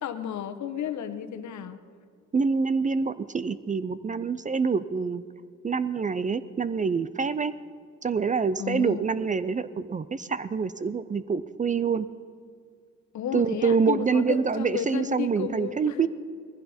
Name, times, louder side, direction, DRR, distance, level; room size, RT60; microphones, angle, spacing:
voice 1, 0.0-1.8 8.6-9.0 13.1-16.1, left 9 dB, 70° left, 8 dB, 1.1 m, -32 dB
voice 2, 2.3-5.2 5.6-7.5 8.0-12.1 13.3-16.1, right 5 dB, 25° right, 15 dB, 0.5 m, -26 dB
19.5 x 15.0 x 4.3 m, 2.1 s
cardioid pair, 90°, 30 cm